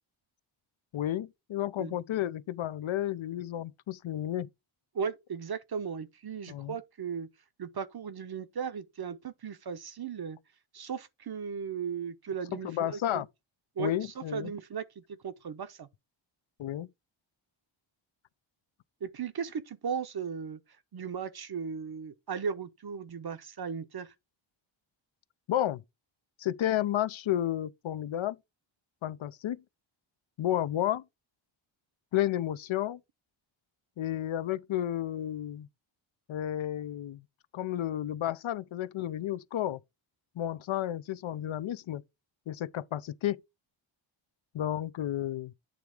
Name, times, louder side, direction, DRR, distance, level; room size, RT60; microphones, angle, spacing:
voice 1, 0.9-4.5 6.5-6.8 12.6-13.3 13.8-14.5 16.6-16.9 25.5-25.8 26.4-28.4 29.0-29.6 30.4-31.0 32.1-33.0 34.0-35.7 36.3-37.2 37.5-39.8 40.4-42.0 42.5-43.4 44.5-45.5, left 12 dB, 75° left, 0.6 m, -32 dB
voice 2, 4.9-7.3 7.6-10.4 10.7-13.2 13.8-14.8 15.2-15.9 19.0-20.6 20.9-24.1, right 6 dB, 50° right, 0.8 m, -36 dB
8.8 x 3.4 x 4.8 m
wide cardioid pair, 125°, 47 cm